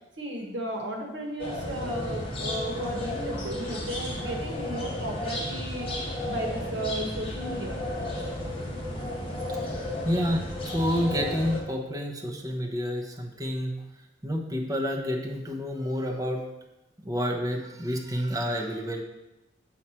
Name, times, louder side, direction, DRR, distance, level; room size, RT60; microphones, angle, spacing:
voice 1, 0.2-5.9 6.2-7.8, right 1 dB, 80° right, 1 dB, 1.4 m, -34 dB
sound 1, 1.4-11.6, left 1 dB, 30° left, 1.4 m, -33 dB
voice 2, 10.0-13.8 14.2-16.4 17.0-19.0, equal, 20° right, 0 dB, 0.9 m, -29 dB
7.4 x 4.8 x 4.4 m, 0.99 s
head